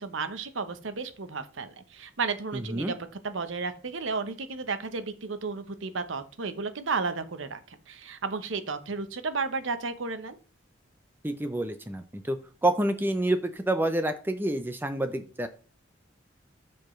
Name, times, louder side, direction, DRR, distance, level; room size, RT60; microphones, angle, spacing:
voice 1, 0.0-3.0 3.2-10.4, right 4 dB, 75° right, 10 dB, 0.8 m, -33 dB
voice 2, 2.5-2.9 11.2-12.4 12.6-15.5, right 1 dB, 10° right, 8 dB, 0.5 m, -28 dB
12.5 x 4.5 x 3.1 m, 0.39 s
head